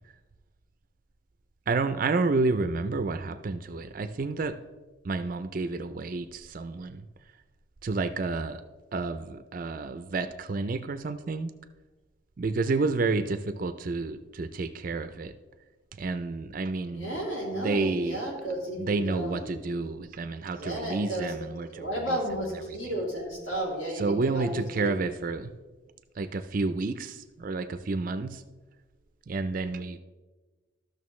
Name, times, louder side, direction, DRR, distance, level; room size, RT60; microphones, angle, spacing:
voice 1, 1.7-4.6 5.0-7.0 7.8-8.6 8.9-11.5 12.4-15.3 16.0-17.1 17.5-18.2 18.8-22.2 24.0-25.5 26.2-28.4 29.3-30.0, right 3 dB, 40° right, 11 dB, 0.4 m, -30 dB
voice 2, 16.9-19.9 20.5-21.4 21.7-24.9, right 1 dB, 75° left, -3 dB, 2.9 m, -33 dB
13.0 x 6.4 x 3.1 m, 1.2 s
head